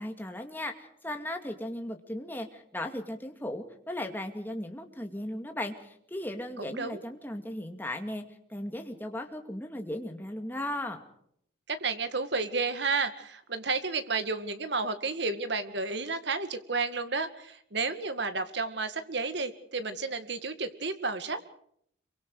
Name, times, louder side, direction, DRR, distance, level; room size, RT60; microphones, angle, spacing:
voice 1, 0.0-8.2 8.5-11.0, left 1 dB, 10° left, 4 dB, 2.3 m, -37 dB
voice 2, 6.6-7.0 11.7-21.5, right 4 dB, 60° right, 10 dB, 2.0 m, -32 dB
26.5 x 24.0 x 4.8 m, 0.69 s
head